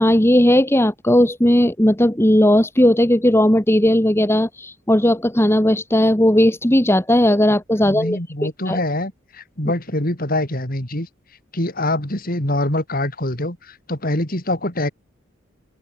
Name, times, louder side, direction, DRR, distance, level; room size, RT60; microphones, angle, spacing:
voice 1, 0.0-8.2 8.7-8.8, left 1 dB, 10° left, 1.8 m, -16 dB
voice 2, 7.8-11.1 11.5-14.9, left 1 dB, 45° left, 4.9 m, -24 dB
open air
head